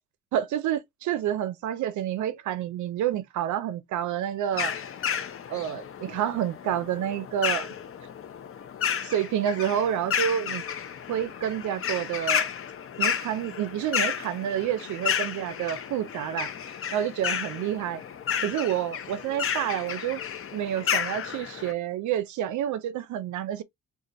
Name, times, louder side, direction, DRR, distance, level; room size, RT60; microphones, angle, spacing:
voice 1, 0.3-4.7 5.5-7.7 9.0-10.6 11.1-12.5 13.0-16.5 16.9-18.0 18.4-20.2 20.5-23.6, right 10 dB, 75° right, 0.5 m, -29 dB
sound 1, 4.5-21.7, left 8 dB, 45° left, 0.7 m, -32 dB
2.5 x 2.4 x 4.0 m
cardioid pair, 90°, 30 cm